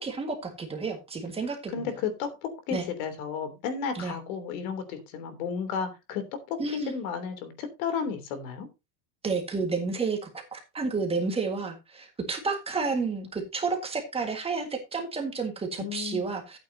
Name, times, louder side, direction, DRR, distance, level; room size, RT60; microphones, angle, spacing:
voice 1, 0.0-1.9 2.7-2.8 3.9-4.1 6.6-6.9 9.2-16.6, right 4 dB, 15° right, 1.7 m, -31 dB
voice 2, 1.7-8.7 15.8-16.2, left 6 dB, 75° left, 3.2 m, -33 dB
13.5 x 8.7 x 2.8 m
cardioid pair, 165°, 43 cm